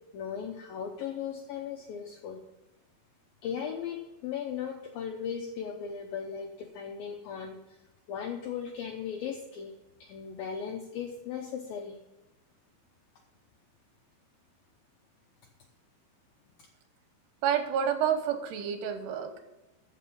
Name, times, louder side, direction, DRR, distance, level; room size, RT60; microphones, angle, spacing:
voice 1, 0.1-2.4 3.4-7.8 8.1-9.7 10.0-12.0 16.6-16.7, left 7 dB, 75° left, 3 dB, 2.2 m, -37 dB
voice 2, 17.4-19.4, right 8 dB, 75° right, 6 dB, 3.0 m, -29 dB
14.5 x 5.9 x 5.5 m, 1.0 s
omnidirectional pair, 5.0 m